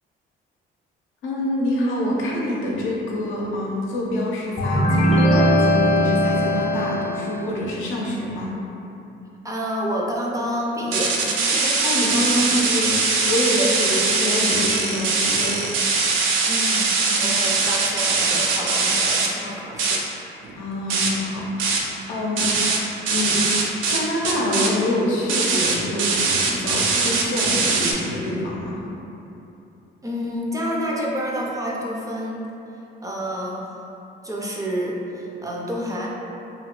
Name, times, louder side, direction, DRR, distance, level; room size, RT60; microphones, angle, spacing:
voice 1, 1.2-8.6 11.8-12.9 13.3-15.7 17.1-17.3 20.6-23.4 23.9-28.8, left 1 dB, 80° left, -4 dB, 0.6 m, -26 dB
sound 1, 4.6-7.4, equal, 35° left, 0.6 m, -19 dB
voice 2, 9.4-11.8 12.1-12.4 13.5-13.7 16.5-20.0 30.0-32.5 33.0-33.8 34.2-36.1, equal, 15° right, -3 dB, 0.4 m, -29 dB
sound 2, 10.9-19.3 19.7-20.0 20.4-20.6 20.9-21.2 21.6-21.9 22.4-22.8 23.1-24.0 24.2-24.7 25.3-27.9, right 4 dB, 90° right, 0.4 m, -21 dB
2.8 x 2.1 x 2.9 m, 2.9 s
cardioid pair, 90°, 20 cm